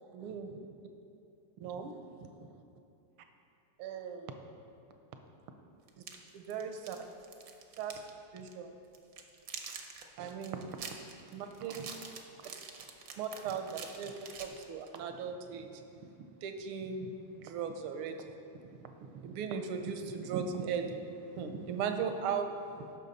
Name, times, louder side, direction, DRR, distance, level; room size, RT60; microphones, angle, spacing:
voice 1, 0.1-0.5 1.6-1.9 2.2-2.3 3.8-4.3 6.3-7.0 7.8-8.0 8.3-8.7 10.2-10.7 11.3-11.9 13.2-14.1 14.4-16.1 16.4-18.3 18.6-22.5 22.8-22.9, right 6 dB, 80° right, 6 dB, 1.5 m, -38 dB
sound 1, 5.9-8.1 8.4-8.5 8.9-15.0, right 6 dB, 65° right, 0.9 m, -46 dB
14.0 x 5.8 x 4.0 m, 2.7 s
omnidirectional pair, 2.4 m